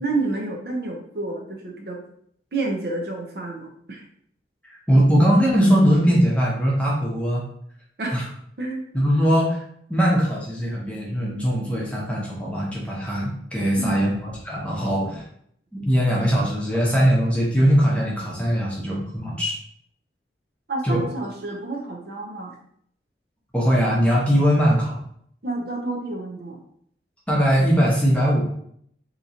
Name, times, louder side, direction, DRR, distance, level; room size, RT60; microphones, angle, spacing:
voice 1, 0.0-2.0 2.5-4.0 8.0-8.2 8.6-8.8 13.8-14.2 20.7-22.5 25.4-26.6, right 2 dB, 55° right, 0 dB, 0.7 m, -29 dB
voice 2, 4.6-7.4 8.1-8.2 8.9-9.6 9.9-15.2 15.8-19.5 20.8-21.0 23.5-25.0 27.3-28.4, equal, 5° left, -4 dB, 0.8 m, -20 dB
3.7 x 2.9 x 2.8 m, 0.67 s
head